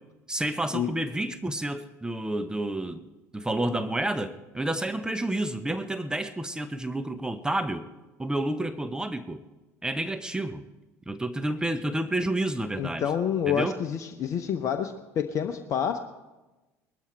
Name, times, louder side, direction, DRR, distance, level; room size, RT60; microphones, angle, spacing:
voice 1, 0.3-3.1 3.3-7.9 8.2-9.4 9.8-10.6 11.1-13.0 13.5-13.7, right 1 dB, 10° right, 10 dB, 0.8 m, -30 dB
voice 2, 12.8-16.0, left 8 dB, 40° left, 7 dB, 0.9 m, -28 dB
20.0 x 13.0 x 4.5 m, 1.1 s
figure-of-eight pair, 65°, 8 cm